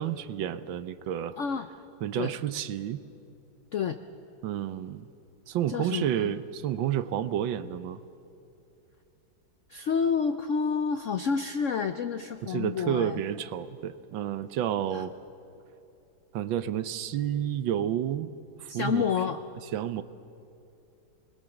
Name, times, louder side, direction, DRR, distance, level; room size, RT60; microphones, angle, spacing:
voice 1, 0.0-1.4 2.0-3.0 4.4-5.1 5.5-8.0 12.4-15.1 16.3-18.3 18.6-19.1 19.7-20.0, right 10 dB, 75° right, 13 dB, 1.5 m, -30 dB
voice 2, 1.4-1.7 2.2-2.3 3.7-4.0 5.7-6.4 9.7-13.2 14.9-15.0 18.7-19.4, left 6 dB, 70° left, 8 dB, 0.7 m, -29 dB
26.0 x 20.5 x 7.1 m, 2.7 s
omnidirectional pair, 2.1 m